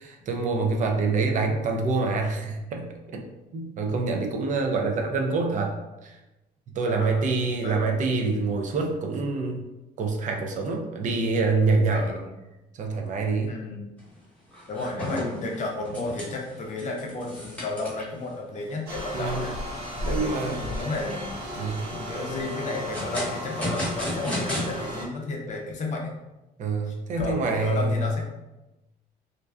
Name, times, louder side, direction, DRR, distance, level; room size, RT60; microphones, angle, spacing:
voice 1, 0.0-3.2 3.5-5.7 6.0-6.1 6.7-9.6 10.0-12.1 12.8-13.5 19.1-19.4 20.0-20.7 21.6-21.8 26.6-28.1, right 3 dB, 50° right, 3 dB, 0.4 m, -26 dB
voice 2, 6.9-7.3 7.6-8.0 11.9-12.3 13.4-13.9 14.7-19.5 20.0-21.4 21.9-26.1 26.9-28.2, left 3 dB, 45° left, 0 dB, 0.5 m, -33 dB
sound 1, 14.0-14.2 14.5-18.2 18.7-18.8 19.2-19.3 19.8-20.2 20.8-21.4 22.5-24.7, left 1 dB, 10° left, 0.9 m, -33 dB
sound 2, 18.9-25.1, equal, 75° right, 0.8 m, -34 dB
2.5 x 2.2 x 2.3 m, 0.99 s
cardioid pair, 110°, 17 cm